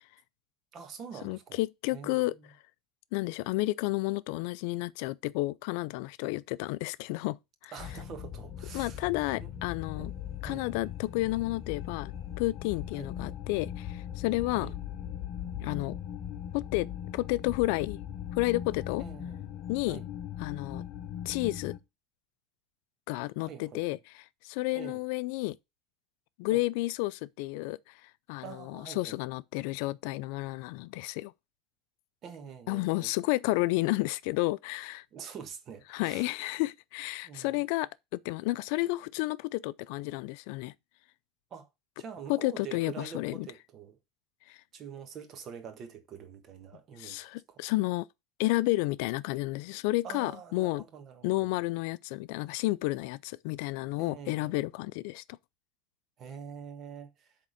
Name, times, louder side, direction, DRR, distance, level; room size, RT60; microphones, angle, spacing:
voice 1, 0.7-1.6 1.9-2.5 7.7-9.0 9.4-9.5 10.0-10.1 10.4-10.8 12.9-13.1 14.5-14.7 19.0-19.5 19.9-20.0 23.4-23.8 24.7-25.0 26.5-26.6 28.4-29.2 32.2-33.1 35.1-36.3 37.2-37.6 41.5-41.7 42.0-44.0 44.7-47.6 50.0-51.5 54.0-54.7 56.2-57.4, right 7 dB, 35° right, 1.5 m, -45 dB
voice 2, 1.2-2.3 3.1-7.7 8.7-10.1 10.4-14.7 15.6-15.9 16.5-18.0 18.3-19.0 19.7-20.0 20.4-20.8 21.2-21.7 23.1-25.6 26.4-31.3 32.7-35.0 35.9-40.7 42.3-43.5 44.5-44.6 47.0-48.1 48.4-50.8 51.2-55.2, left 20 dB, 70° left, 0.4 m, -31 dB
Inside Path pad, 7.8-21.8, left 10 dB, 35° left, 1.0 m, -39 dB
8.4 x 3.6 x 6.6 m
supercardioid pair, 135°, 0 cm